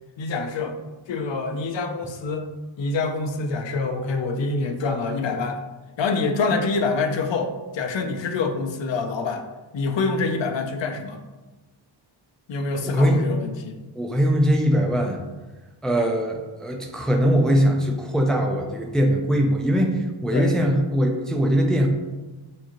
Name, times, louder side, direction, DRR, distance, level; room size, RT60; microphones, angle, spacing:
voice 1, 0.2-0.8 1.1-2.5 2.8-5.6 6.0-9.4 9.7-11.2 12.5-13.8 20.3-20.5, left 4 dB, 65° left, 6 dB, 0.6 m, -26 dB
voice 2, 12.8-13.2 13.9-15.2 15.8-21.9, equal, ahead, 2 dB, 0.3 m, -21 dB
6.4 x 2.7 x 2.9 m, 1.2 s
wide cardioid pair, 165°, 48 cm